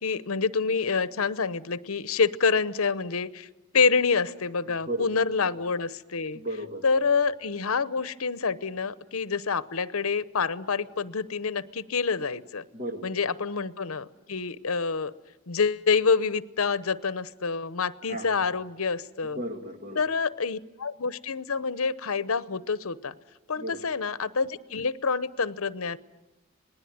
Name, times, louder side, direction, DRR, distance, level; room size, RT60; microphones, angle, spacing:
voice 1, 0.0-3.5 3.7-6.4 6.8-12.6 13.0-15.1 15.5-19.4 20.0-23.1 23.5-26.0, left 5 dB, 75° left, 16 dB, 0.8 m, -27 dB
voice 2, 4.7-5.1 5.4-5.5 6.3-6.8 12.7-13.1 18.1-18.3 19.3-20.0 23.6-23.8, right 1 dB, 40° right, 5 dB, 2.4 m, -35 dB
27.0 x 19.5 x 9.4 m, 1.1 s
head